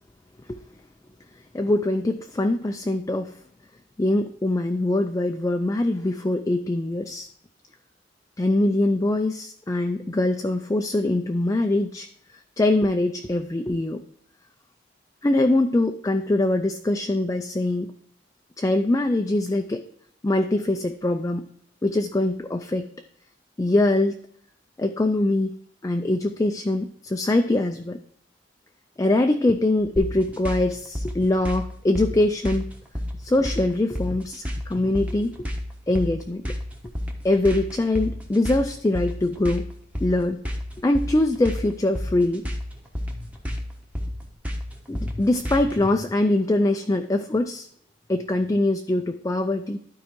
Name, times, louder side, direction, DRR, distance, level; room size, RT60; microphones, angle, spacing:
voice 1, 1.5-3.3 4.0-7.3 8.4-12.1 12.6-14.0 15.2-17.9 18.6-19.8 20.2-21.4 21.8-22.9 23.6-24.2 24.8-25.5 25.8-28.0 29.0-32.7 33.2-35.5 35.9-36.4 37.2-39.7 40.0-40.4 40.8-42.5 44.9-47.7 48.1-49.8, left 2 dB, 15° left, 6 dB, 0.4 m, -23 dB
sound 1, 30.0-45.8, left 1 dB, 10° right, 1.1 m, -31 dB
12.0 x 4.7 x 4.5 m, 0.67 s
head